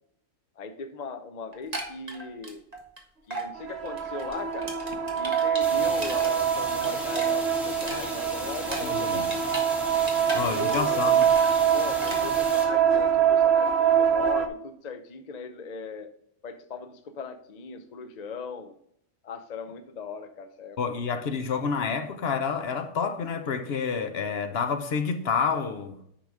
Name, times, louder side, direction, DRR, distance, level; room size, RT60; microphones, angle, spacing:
voice 1, 0.6-2.6 3.3-4.7 5.2-9.3 10.3-11.2 11.7-16.1 16.4-18.7 19.2-20.8, left 4 dB, 45° left, 0.7 m, -38 dB
sound 1, 1.5-3.0 3.3-3.5 3.8-6.3 6.6-9.7 9.9-11.0 11.2-11.6 12.0-12.2, right 2 dB, 35° right, 1.6 m, -37 dB
sound 2, 3.6-14.5, right 8 dB, 60° right, 1.0 m, -24 dB
sound 3, 5.6-12.7, equal, ahead, 2.1 m, -38 dB
voice 2, 8.8-9.3 10.3-11.3 20.8-26.0, left 5 dB, 60° left, 1.0 m, -29 dB
10.0 x 3.9 x 4.8 m
omnidirectional pair, 1.2 m